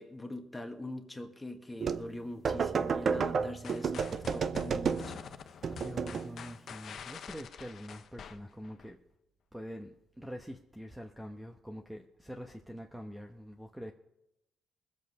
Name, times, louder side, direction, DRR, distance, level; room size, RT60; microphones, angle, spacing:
voice 1, 0.0-5.2, left 1 dB, 10° left, 1.6 m, -43 dB
sound 1, 1.8-2.1 2.5-5.2 5.6-6.4, right 6 dB, 50° right, 0.6 m, -31 dB
sound 2, 3.6-8.9, left 7 dB, 60° left, 0.7 m, -47 dB
voice 2, 5.7-9.0 9.5-13.9, equal, 5° right, 1.0 m, -45 dB
21.0 x 7.6 x 4.9 m
cardioid pair, 90°, 0 cm